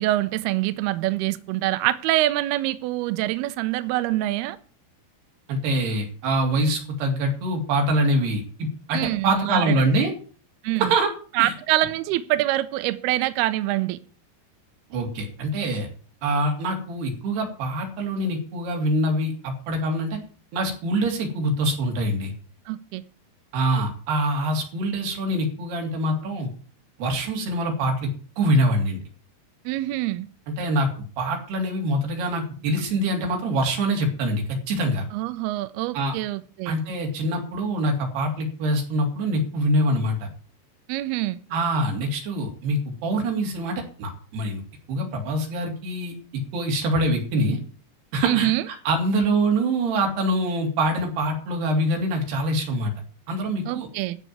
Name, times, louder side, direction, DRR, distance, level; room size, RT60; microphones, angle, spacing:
voice 1, 0.0-4.6 8.9-9.8 10.6-10.9 11.3-14.0 22.7-23.0 29.7-30.3 35.1-36.8 40.9-41.4 48.2-48.6 53.7-54.2, right 16 dB, 85° right, 2.3 m, -25 dB
voice 2, 5.5-10.1 10.8-11.1 11.4-11.5 14.9-15.9 16.2-20.2 20.5-22.3 23.5-26.5 27.0-28.1 28.4-29.0 30.6-30.9 31.2-35.0 35.9-36.2 36.7-40.3 41.5-44.6 44.9-46.1 46.5-47.6 48.1-52.9 53.3-53.9, right 1 dB, 60° right, 4.8 m, -24 dB
13.5 x 5.3 x 9.3 m
omnidirectional pair, 5.3 m